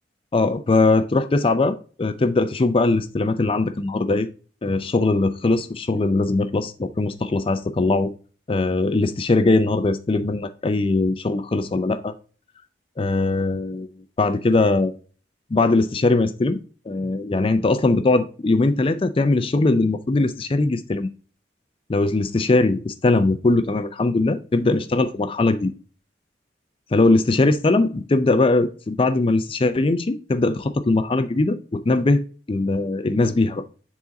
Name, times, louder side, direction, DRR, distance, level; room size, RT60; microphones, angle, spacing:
voice 1, 0.3-4.3 4.6-8.1 8.5-12.1 13.0-13.9 14.2-15.0 15.5-16.6 16.9-21.1 21.9-25.7 26.9-32.2 32.5-33.6, left 2 dB, 30° left, 0.4 m, -20 dB
7.3 x 4.0 x 3.8 m
head